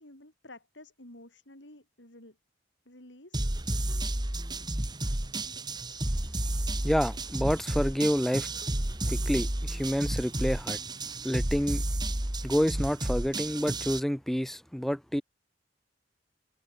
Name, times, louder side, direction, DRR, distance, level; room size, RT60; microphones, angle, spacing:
voice 1, 0.0-2.4 2.8-3.5, left 1 dB, 70° left, 6.6 m, -51 dB
sound 1, 3.3-14.0, right 1 dB, 25° right, 1.7 m, -31 dB
voice 2, 6.8-8.5 9.1-10.8 11.2-11.8 12.4-15.2, equal, ahead, 0.5 m, -28 dB
head